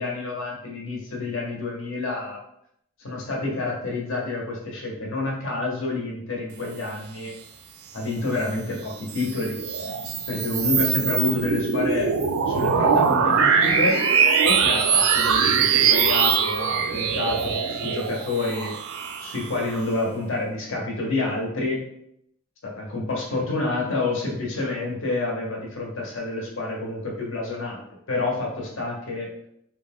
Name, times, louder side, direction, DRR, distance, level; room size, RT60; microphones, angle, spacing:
voice 1, 0.0-2.4 3.0-7.3 7.9-9.6 10.3-12.1 12.5-14.0 14.4-18.7 19.2-21.8 22.6-27.8 28.1-29.3, left 2 dB, 60° left, -1 dB, 0.7 m, -28 dB
sound 1, 8.9-19.8, right 6 dB, 65° right, 0.3 m, -22 dB
2.4 x 2.1 x 3.5 m, 0.76 s
head